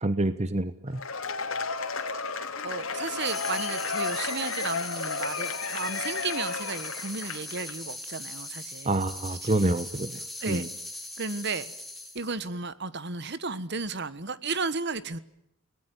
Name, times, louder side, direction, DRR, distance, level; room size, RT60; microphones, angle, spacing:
voice 1, 0.0-1.0 8.8-10.7, right 2 dB, 30° right, 12 dB, 1.0 m, -27 dB
Cheering / Applause / Crowd, 0.9-7.7, left 4 dB, 75° left, 3.1 m, -33 dB
voice 2, 2.6-9.0 9.4-9.5 10.4-10.7 11.2-11.7 12.1-15.2, right 4 dB, 55° right, 15 dB, 1.4 m, -34 dB
sound 1, 3.2-12.3, left 1 dB, ahead, 3.7 m, -40 dB
29.5 x 19.0 x 9.5 m, 0.81 s
head